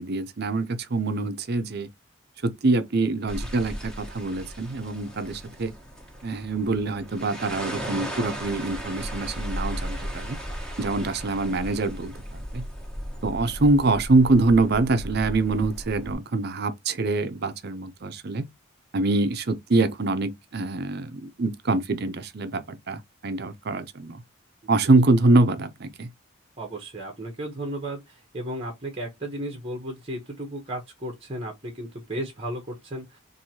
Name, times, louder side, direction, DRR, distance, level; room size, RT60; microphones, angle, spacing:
voice 1, 0.0-1.9 2.4-5.7 6.2-10.4 10.8-12.7 13.2-18.5 18.9-24.2 24.7-26.1, right 3 dB, 50° right, 0.6 m, -24 dB
sound 1, 3.3-16.1, equal, 5° left, 1.2 m, -36 dB
voice 2, 26.6-33.2, right 1 dB, 30° right, 0.9 m, -34 dB
4.5 x 2.7 x 2.8 m
head